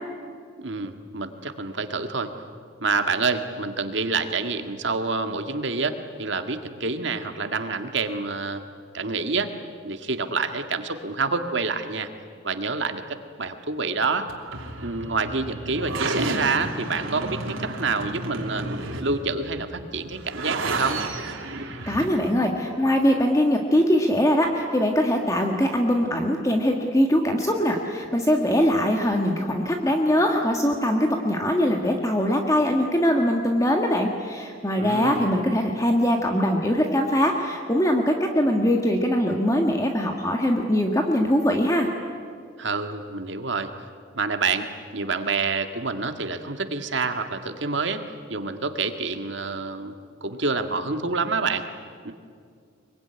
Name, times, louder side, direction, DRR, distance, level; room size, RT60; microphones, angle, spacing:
voice 1, 0.6-2.3 2.8-8.6 8.9-9.5 9.8-12.1 12.4-14.3 14.8-18.6 19.0-21.0 34.8-35.3 42.6-43.7 44.2-48.0 48.3-49.9 50.2-51.6 52.0-52.1, right 4 dB, 60° right, 7 dB, 1.9 m, -27 dB
sound 1, 14.3-22.0, right 2 dB, 90° right, 3.2 m, -32 dB
voice 2, 21.9-41.9, equal, 15° left, 3 dB, 1.7 m, -22 dB
24.5 x 23.0 x 9.9 m, 2.1 s
head